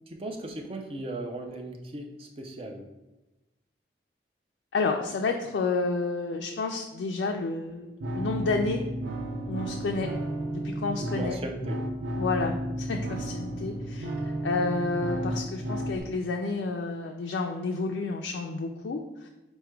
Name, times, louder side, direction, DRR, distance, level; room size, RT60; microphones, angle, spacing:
voice 1, 0.2-2.8 11.1-11.8, right 2 dB, 30° right, 3 dB, 0.4 m, -37 dB
voice 2, 4.7-7.9 8.1-8.8 9.5-10.1 10.5-11.4 12.2-14.1 14.4-19.3, left 3 dB, 80° left, 2 dB, 0.4 m, -30 dB
sound 1, 8.0-16.0, right 1 dB, 90° right, 0.5 m, -33 dB
4.8 x 2.2 x 4.4 m, 1.0 s
head